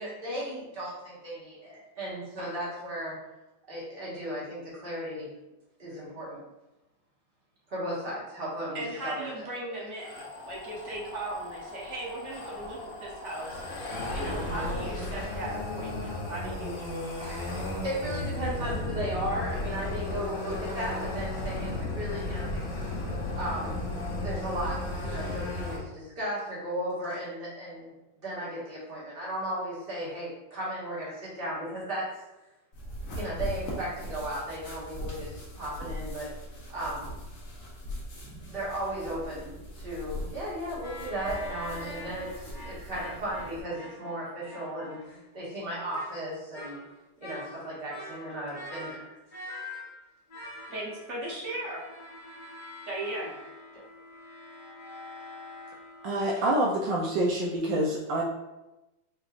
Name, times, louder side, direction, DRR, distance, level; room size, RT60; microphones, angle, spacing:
voice 1, 0.0-3.2 3.7-5.3 5.8-6.4 7.7-9.5 17.2-22.7 23.4-23.8 24.2-27.9 28.2-32.1 33.1-36.3 36.7-37.1 38.3-45.0 45.3-46.8 47.2-49.2 53.7-53.8, right 1 dB, 35° right, -7 dB, 1.4 m, -35 dB
voice 2, 8.7-13.6 14.1-16.8 50.7-51.8 52.9-53.3, right 2 dB, 55° right, -4 dB, 0.9 m, -37 dB
sound 1, 10.0-25.8, left 2 dB, 85° left, 1.7 m, -34 dB
sound 2, 32.7-43.6, equal, 50° left, 1.2 m, -40 dB
sound 3, 40.8-45.3 45.9-46.2 46.5-46.9 47.2-50.0 50.3-56.5, left 1 dB, 70° left, 0.4 m, -45 dB
voice 3, 56.0-58.2, right 1 dB, 80° right, -2 dB, 1.3 m, -27 dB
4.7 x 3.2 x 2.4 m, 1.0 s
omnidirectional pair, 2.1 m